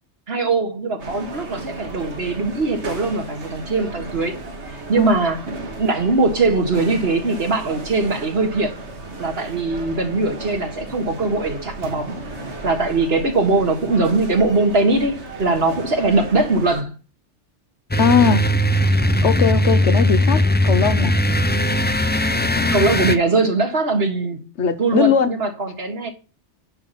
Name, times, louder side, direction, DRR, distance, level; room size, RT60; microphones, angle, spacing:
voice 1, 0.3-4.3 4.7-5.5 5.8-8.8 9.2-12.2 12.6-16.9 22.5-24.4 24.8-26.1, right 3 dB, 60° right, 1.9 m, -21 dB
sound 1, 1.0-16.8, right 2 dB, 75° right, 2.0 m, -35 dB
sound 2, 17.9-23.2, equal, 15° left, 0.3 m, -18 dB
voice 2, 18.0-18.5 19.2-21.2 24.6-25.3, left 6 dB, 75° left, 1.3 m, -19 dB
10.5 x 5.7 x 5.8 m
omnidirectional pair, 1.2 m